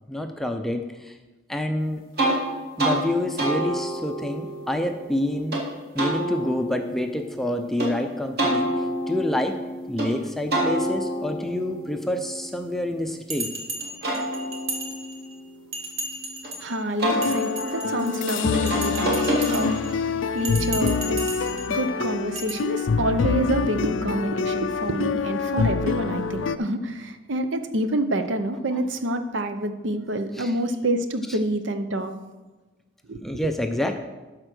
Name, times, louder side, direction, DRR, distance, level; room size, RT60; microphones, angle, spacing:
voice 1, 0.1-1.2 1.5-2.0 2.8-5.6 5.9-9.6 9.9-13.5 30.3-30.5 31.3-31.4 33.2-34.0, left 1 dB, ahead, 5 dB, 0.5 m, -27 dB
sound 1, 2.2-2.4 2.8-3.0 3.4-5.6 6.0-7.9 8.4-10.1 10.5-13.4 13.8-16.5 17.0-20.0, right 1 dB, 50° right, 2.5 m, -29 dB
Bell, 13.3-15.3 15.7-16.7 17.1-18.2 18.7-19.9 20.4-21.7 22.3-22.5, right 2 dB, 90° right, 1.8 m, -34 dB
voice 2, 16.6-19.8 20.3-32.1 33.1-33.4, right 1 dB, 70° right, 9 dB, 0.8 m, -27 dB
sound 2, 17.1-26.6, left 5 dB, 75° left, 0.4 m, -26 dB
13.0 x 4.4 x 6.2 m, 1.2 s
head